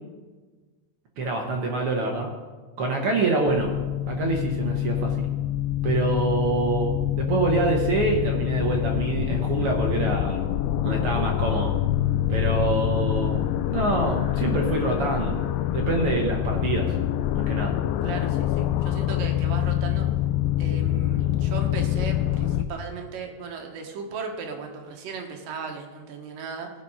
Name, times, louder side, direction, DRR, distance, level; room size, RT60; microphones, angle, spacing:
voice 1, 1.2-2.3 2.8-3.7 4.1-5.3 5.8-10.5 10.8-11.7 12.3-13.4 13.7-15.4 15.7-17.0 17.3-17.7, right 3 dB, 60° right, 1 dB, 1.6 m, -26 dB
sound 1, 3.5-22.6, left 12 dB, 85° left, 2.1 m, -25 dB
voice 2, 18.0-20.1 20.6-26.7, right 5 dB, 80° right, 3 dB, 2.9 m, -36 dB
17.0 x 6.2 x 5.5 m, 1.3 s
omnidirectional pair, 3.9 m